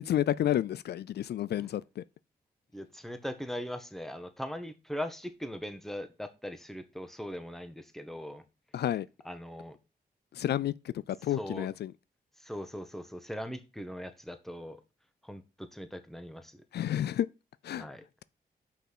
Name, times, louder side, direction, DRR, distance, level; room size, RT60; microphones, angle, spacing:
voice 1, 0.0-2.0 8.7-9.1 10.3-11.9 16.7-17.3 17.6-17.9, left 11 dB, 85° left, 0.4 m, -30 dB
voice 2, 2.7-8.4 9.2-9.8 11.4-11.7 12.4-14.8 15.2-16.6 17.8-18.0, equal, ahead, 1.3 m, -40 dB
6.2 x 5.7 x 6.1 m
cardioid pair, 90°, 17 cm